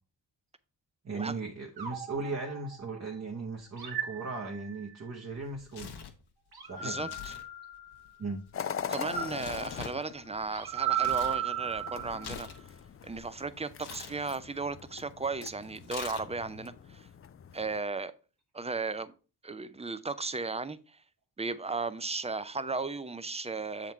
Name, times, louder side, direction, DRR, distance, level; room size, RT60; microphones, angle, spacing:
voice 1, 1.0-6.0 6.7-7.1 8.2-8.4, right 3 dB, 35° right, 1.1 m, -37 dB
sound 1, 1.8-3.1 3.8-5.0 6.5-8.2 8.9-12.4, right 9 dB, 60° right, 1.6 m, -36 dB
Tearing, 5.4-6.2 7.0-7.5 7.7-11.4 11.8-13.3 13.8-14.2 15.8-16.5, left 7 dB, 65° left, 1.0 m, -45 dB
voice 2, 6.8-7.3 8.9-12.5 13.0-17.1 17.5-18.1 18.5-19.1 19.4-21.0 21.4-23.9, right 3 dB, 15° right, 0.5 m, -35 dB
sound 2, 8.5-17.8, left 8 dB, 35° left, 0.4 m, -42 dB
7.1 x 3.9 x 4.4 m
cardioid pair, 65°, 43 cm